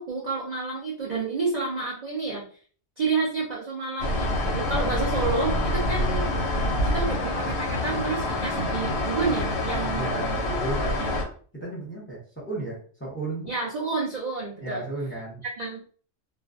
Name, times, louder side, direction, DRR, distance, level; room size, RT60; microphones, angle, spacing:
voice 1, 0.0-2.4 3.0-6.3 6.8-10.2 11.0-11.2 13.5-14.8 15.6-15.8, right 4 dB, 50° right, -4 dB, 0.5 m, -29 dB
sound 1, 4.0-11.2, left 1 dB, 65° left, 0.8 m, -26 dB
voice 2, 9.9-11.3 11.6-13.5 14.6-15.4, right 2 dB, 10° left, -6 dB, 0.8 m, -34 dB
2.4 x 2.1 x 2.5 m, 0.43 s
omnidirectional pair, 1.3 m